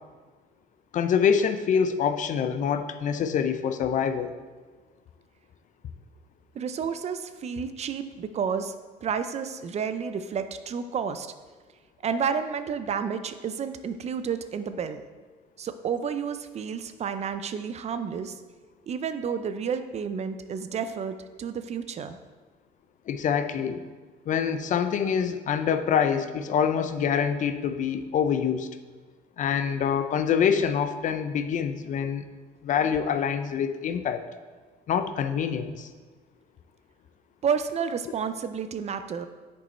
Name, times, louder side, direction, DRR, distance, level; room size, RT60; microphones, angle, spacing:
voice 1, 0.9-4.3 23.1-23.8 24.3-28.7 29.4-32.3 32.6-34.3 34.9-35.9, left 7 dB, 50° left, 10 dB, 0.5 m, -25 dB
voice 2, 6.5-8.7 9.0-11.3 12.0-15.0 15.6-18.4 18.9-22.2 37.4-39.3, right 6 dB, 40° right, 10 dB, 0.5 m, -30 dB
6.9 x 5.3 x 4.3 m, 1.4 s
cardioid pair, 110°, 17 cm